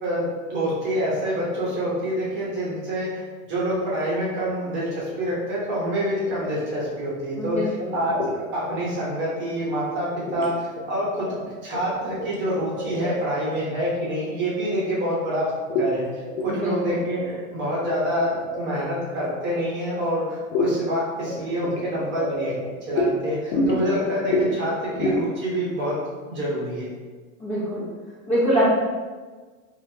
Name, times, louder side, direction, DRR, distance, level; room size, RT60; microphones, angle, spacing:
voice 1, 0.0-8.2 8.5-11.3 11.6-15.4 15.8-22.5 22.9-26.0 26.3-26.8, equal, 25° right, -6 dB, 1.1 m, -27 dB
sound 1, 6.3-6.5 8.0-8.3 8.7-9.1 10.3-10.5 10.8-11.5 11.7-13.4 15.7-15.9 16.3-16.6 16.9-17.0 17.2-18.9 20.5-20.7 21.3-23.1 23.5-24.0 24.3-24.5 24.8-25.2, left 2 dB, 70° left, 1.0 m, -27 dB
voice 2, 7.4-7.9 16.5-17.0 23.5-24.0 27.4-27.8 28.3-28.7, equal, 15° left, -9 dB, 1.0 m, -24 dB
4.3 x 2.6 x 2.8 m, 1.4 s
supercardioid pair, 140°, 40 cm